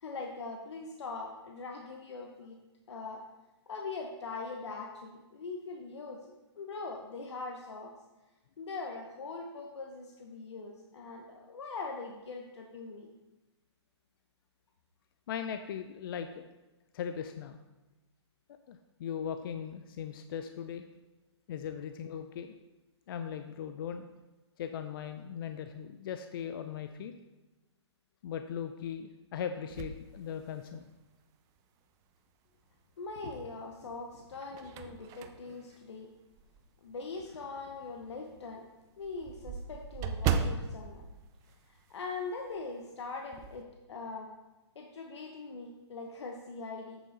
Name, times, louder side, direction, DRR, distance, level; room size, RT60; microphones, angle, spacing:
voice 1, 0.0-2.6 2.9-3.2 3.7-7.9 8.6-13.1 33.0-36.1 36.8-38.6 39.0-41.0 41.7-44.3 44.7-47.0, left 3 dB, 70° left, 1 dB, 1.0 m, -42 dB
voice 2, 15.3-16.5 16.9-17.6 18.7-20.8 21.5-22.5 23.1-24.0 24.6-27.1 28.2-30.8, left 8 dB, 50° left, 8 dB, 0.5 m, -39 dB
sound 1, 29.7-31.0 31.6-31.7 33.1-33.7 34.1-36.8 37.2-37.3 37.7-37.8 38.1-38.2 38.4-42.2 42.5-42.7 43.0-43.6, right 6 dB, 25° right, 0.5 m, -37 dB
8.1 x 7.2 x 3.9 m, 1.1 s
hypercardioid pair, 135°, 15 cm